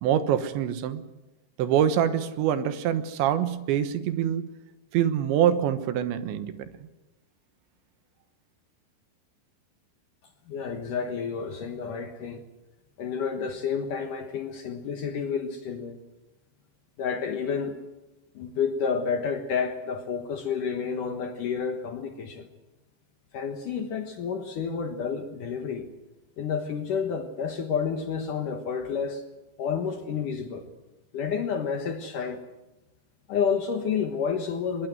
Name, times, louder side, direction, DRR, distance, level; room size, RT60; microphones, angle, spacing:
voice 1, 0.0-1.0 1.6-4.4 4.9-6.9, right 10 dB, 80° right, 11 dB, 3.4 m, -25 dB
voice 2, 10.5-12.4 13.0-16.0 17.0-17.8 18.4-22.5 23.3-25.9 26.4-29.2 29.6-30.6 31.1-32.4 33.3-34.9, left 6 dB, 65° left, 5 dB, 2.3 m, -30 dB
22.0 x 21.5 x 7.8 m, 1.0 s
omnidirectional pair, 5.2 m